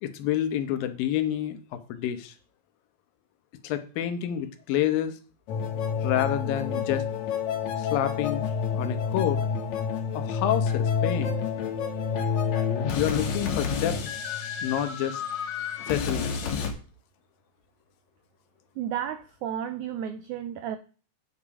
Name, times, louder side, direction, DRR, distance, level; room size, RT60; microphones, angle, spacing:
voice 1, 0.0-2.3 3.6-5.2 6.0-7.1 7.8-8.5 8.7-9.4 10.1-11.4 12.9-14.0 14.6-15.2 15.9-16.4, left 11 dB, 80° left, 9 dB, 2.7 m, -28 dB
sound 1, 5.5-16.7, left 6 dB, 60° left, 2.4 m, -29 dB
voice 2, 18.8-20.8, right 9 dB, 85° right, 10 dB, 1.7 m, -32 dB
9.3 x 5.8 x 4.9 m, 0.37 s
omnidirectional pair, 4.1 m